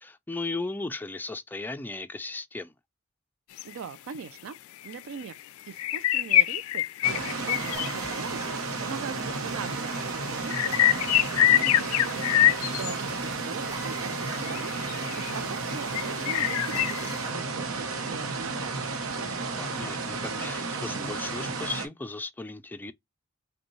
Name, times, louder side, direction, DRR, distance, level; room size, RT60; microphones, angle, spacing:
voice 1, 0.0-2.7 11.5-11.8 19.6-22.9, left 3 dB, 10° left, 0.3 m, -36 dB
sound 1, 3.6-3.7 4.1-4.2 4.9-5.0 5.3-5.4 5.7-8.4 9.3-9.4 9.6-13.2 14.0-15.4 15.9-17.2, left 13 dB, 90° left, 0.3 m, -25 dB
voice 2, 3.6-4.6 4.8-5.4 5.7-11.2 11.8-14.9 15.3-19.0, right 6 dB, 70° right, 0.4 m, -41 dB
sound 2, 7.0-21.9, right 3 dB, 90° right, 0.8 m, -33 dB
Drill, 7.7-8.6 10.7-11.5 13.7-14.5 14.8-14.9 16.7-17.4, right 2 dB, 15° right, 0.7 m, -42 dB
5.2 x 2.2 x 3.0 m
head